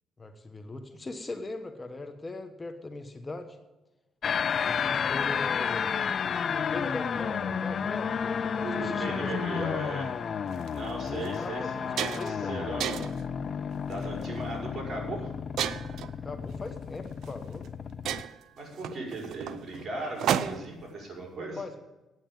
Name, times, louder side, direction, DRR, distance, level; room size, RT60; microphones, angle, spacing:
voice 1, 0.2-3.6 4.6-6.0 6.4-10.0 11.1-12.6 16.2-17.6 21.6-21.7, left 2 dB, 25° left, 7 dB, 1.1 m, -40 dB
sound 1, 4.2-18.2, left 7 dB, 50° left, 0.5 m, -32 dB
voice 2, 8.6-10.1 10.7-11.9 12.2-13.0 13.9-15.3 18.6-21.6, right 2 dB, 40° right, 0 dB, 5.3 m, -37 dB
sound 2, 10.5-10.7 11.3-11.4 11.7-12.4 12.8-13.3 13.9-14.2 15.6-16.1 17.2-17.3 17.7-17.8 18.1-20.8, right 10 dB, 75° right, 0.6 m, -32 dB
9.3 x 8.9 x 9.0 m, 1.1 s
cardioid pair, 90°, 0 cm